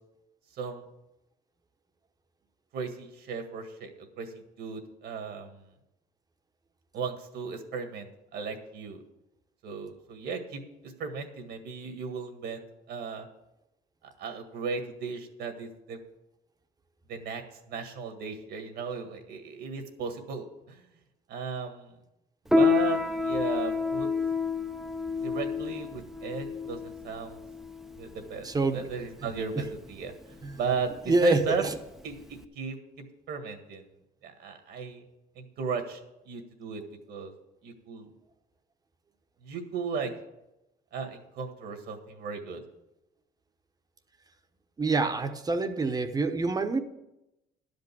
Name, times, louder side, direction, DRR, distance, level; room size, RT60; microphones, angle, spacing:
voice 1, 2.7-5.6 6.9-8.1 8.3-9.0 9.6-13.3 14.2-16.0 17.1-17.4 17.7-20.8 21.3-22.0 22.5-24.1 25.2-27.4 28.0-30.1 30.6-31.6 32.0-33.8 34.2-35.0 35.4-36.0 36.3-36.8 37.1-37.3 37.6-38.1 39.4-40.1 40.9-42.6, right 5 dB, 75° right, 6 dB, 1.8 m, -36 dB
Piano, 22.5-32.4, left 4 dB, ahead, 0.6 m, -29 dB
voice 2, 28.4-28.8 30.4-30.5 31.1-31.7 44.8-46.8, right 3 dB, 20° right, 8 dB, 0.9 m, -26 dB
11.5 x 5.3 x 8.5 m, 0.91 s
cardioid pair, 110°, 17 cm